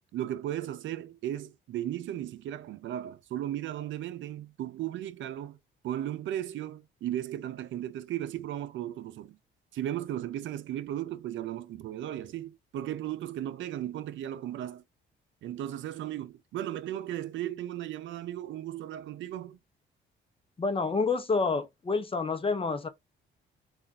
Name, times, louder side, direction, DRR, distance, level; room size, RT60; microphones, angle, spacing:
voice 1, 0.1-5.6 5.8-9.4 9.7-14.8 15.4-19.6, right 12 dB, 70° right, 0.6 m, -36 dB
voice 2, 20.6-22.9, left 4 dB, 25° left, 0.8 m, -28 dB
3.6 x 2.5 x 3.9 m
cardioid pair, 90°, 20 cm